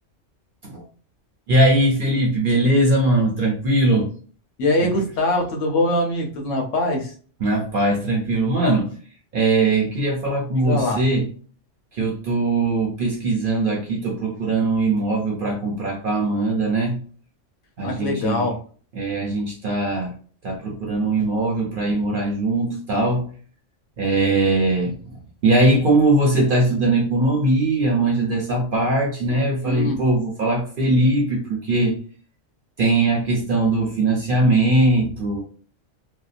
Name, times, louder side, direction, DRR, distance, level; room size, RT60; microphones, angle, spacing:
voice 1, 1.5-4.1 4.8-5.0 7.4-9.0 9.3-11.3 11.9-17.0 17.8-18.5 18.9-20.1 20.4-23.3 24.0-25.0 25.4-32.0 32.8-35.4, right 2 dB, 60° right, 0.6 m, -20 dB
voice 2, 4.6-7.1 10.5-11.0 17.8-18.6 29.6-30.0, left 1 dB, 75° left, 1.0 m, -23 dB
2.7 x 2.1 x 2.4 m
omnidirectional pair, 1.3 m